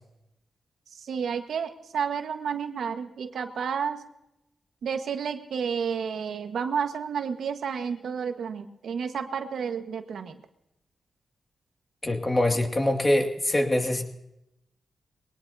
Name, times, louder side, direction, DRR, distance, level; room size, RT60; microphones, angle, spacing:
voice 1, 0.9-4.0 4.8-10.4, right 6 dB, 80° right, 6 dB, 1.5 m, -31 dB
voice 2, 12.0-14.0, left 1 dB, 25° left, 3 dB, 2.3 m, -24 dB
22.5 x 18.5 x 2.8 m, 0.86 s
cardioid pair, 85°, 0 cm